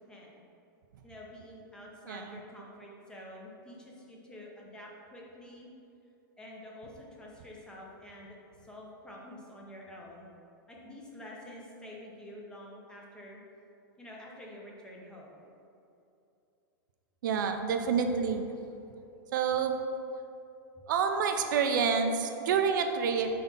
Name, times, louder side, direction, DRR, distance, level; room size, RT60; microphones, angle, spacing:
voice 1, 0.1-0.4 1.0-5.7 6.4-10.3 10.7-13.4 14.0-15.4, left 1 dB, 5° left, -3 dB, 0.7 m, -48 dB
voice 2, 2.1-2.4 17.2-18.4 19.3-19.7 20.9-23.3, right 6 dB, 60° right, 6 dB, 0.5 m, -28 dB
4.2 x 4.0 x 5.5 m, 2.7 s
supercardioid pair, 160°, 11 cm